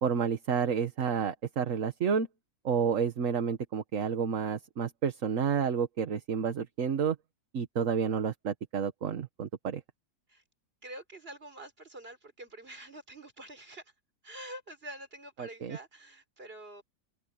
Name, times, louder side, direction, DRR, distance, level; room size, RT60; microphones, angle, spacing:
voice 1, 0.0-2.3 2.6-7.1 7.5-9.8 15.4-15.8, right 6 dB, 55° right, 1.5 m, -30 dB
voice 2, 10.8-13.8 14.2-16.8, right 1 dB, 35° right, 4.1 m, -46 dB
open air
omnidirectional pair, 1.7 m